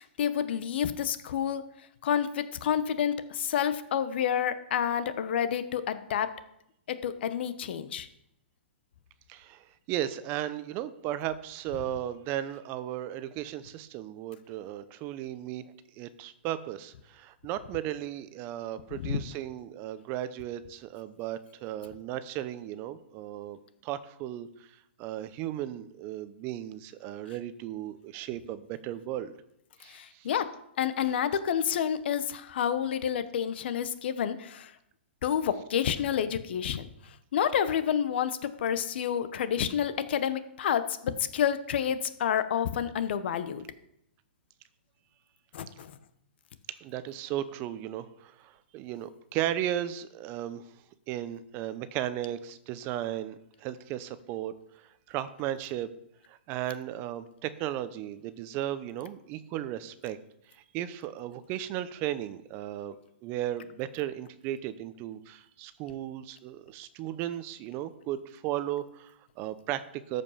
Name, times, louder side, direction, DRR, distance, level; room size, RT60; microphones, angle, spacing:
voice 1, 0.0-1.6 2.0-6.3 6.9-8.1 18.9-19.2 29.9-30.5 30.8-34.7 35.2-36.9 37.3-43.6 45.5-45.9, left 9 dB, 60° left, 12 dB, 1.0 m, -29 dB
voice 2, 9.3-15.6 15.9-24.5 25.0-29.3 29.8-30.3 46.7-50.6 51.1-55.9 56.3-60.2 60.5-62.9 63.2-70.2, right 12 dB, 30° right, 13 dB, 0.7 m, -35 dB
13.5 x 5.3 x 5.7 m, 0.77 s
hypercardioid pair, 135°, 6 cm